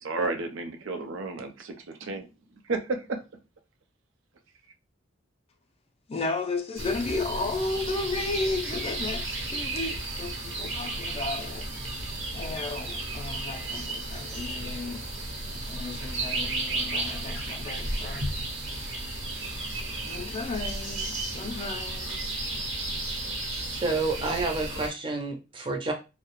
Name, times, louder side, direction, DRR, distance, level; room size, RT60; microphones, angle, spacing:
voice 1, 0.0-2.3 2.6-3.2, right 3 dB, 85° right, 0.5 m, -32 dB
voice 2, 6.1-11.7 12.3-15.1 15.7-18.3 18.6-22.4, left 3 dB, 30° left, 0.4 m, -34 dB
sound 1, 6.8-24.9, right 2 dB, 70° right, 0.9 m, -33 dB
voice 3, 23.7-25.9, right 3 dB, 25° right, 0.5 m, -29 dB
2.3 x 2.0 x 3.0 m
head